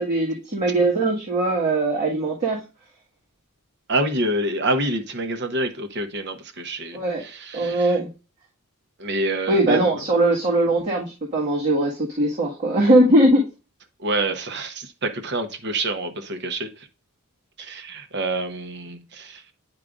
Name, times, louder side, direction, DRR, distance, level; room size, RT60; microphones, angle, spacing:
voice 1, 0.0-2.6 6.9-7.2 7.5-8.1 9.5-13.4, right 1 dB, 35° right, 1.9 m, -20 dB
voice 2, 3.9-8.0 9.0-10.0 14.0-16.9 17.6-19.5, right 2 dB, 50° right, 1.0 m, -27 dB
10.0 x 4.8 x 2.6 m
head